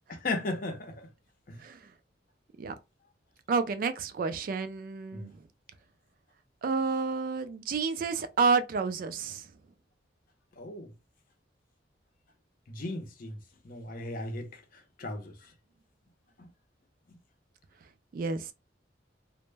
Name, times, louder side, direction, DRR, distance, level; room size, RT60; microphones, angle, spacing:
voice 1, 0.1-1.1 1.5-1.6 5.1-5.3 10.6-10.9 12.7-13.4 13.6-15.5 16.4-16.5 17.1-17.2, left 2 dB, 50° left, 0.6 m, -37 dB
voice 2, 3.5-5.3 6.6-9.5 18.1-18.5, right 4 dB, 50° right, 0.3 m, -30 dB
2.1 x 2.0 x 3.2 m
head